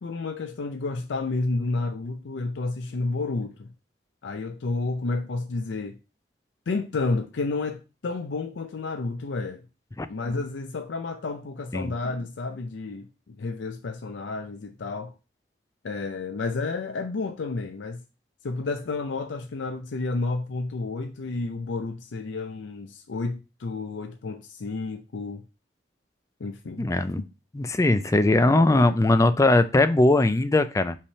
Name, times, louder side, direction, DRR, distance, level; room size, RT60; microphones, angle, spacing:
voice 1, 0.0-3.7 4.2-6.0 6.7-9.7 10.1-15.1 15.8-18.0 18.4-25.4 26.4-26.9, left 3 dB, 80° left, 0.5 m, -31 dB
voice 2, 26.8-27.2 27.6-31.0, left 2 dB, 15° left, 0.4 m, -20 dB
5.4 x 3.4 x 5.4 m
head